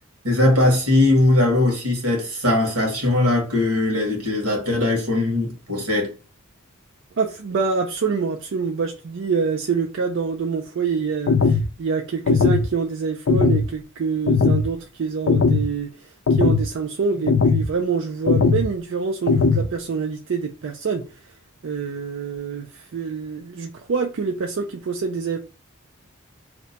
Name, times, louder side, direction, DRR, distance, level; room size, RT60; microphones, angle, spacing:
voice 1, 0.2-6.1, left 2 dB, 90° right, 1.4 m, -20 dB
voice 2, 7.2-16.1 16.4-21.0 21.6-25.4, right 5 dB, 60° right, 0.4 m, -26 dB
sound 1, 11.3-11.7 12.3-12.7 13.3-13.7 14.3-14.7 15.3-15.7 16.3-16.7 17.3-17.7 18.3-18.7 19.3-19.7, left 4 dB, 60° left, 0.4 m, -18 dB
2.9 x 2.1 x 4.0 m
head